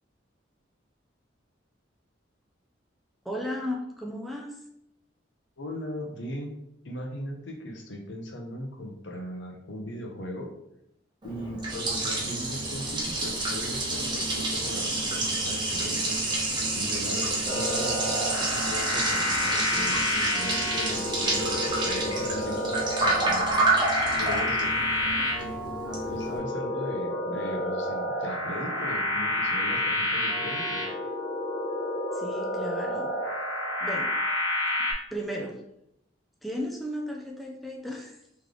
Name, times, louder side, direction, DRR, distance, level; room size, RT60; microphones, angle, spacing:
voice 1, 3.2-4.6 32.1-33.1 33.8-34.1 35.1-35.6 36.4-38.2, equal, ahead, -1 dB, 0.4 m, -35 dB
voice 2, 5.6-6.5 6.8-10.5 11.2-16.2 16.7-23.6 24.2-24.7 26.1-30.8, left 1 dB, 65° left, 2 dB, 0.7 m, -38 dB
Liquid, 11.2-26.4, right 2 dB, 25° right, 0.8 m, -29 dB
sound 1, 17.4-34.9, left 1 dB, 45° left, 1.3 m, -29 dB
3.3 x 3.2 x 3.7 m, 0.79 s
head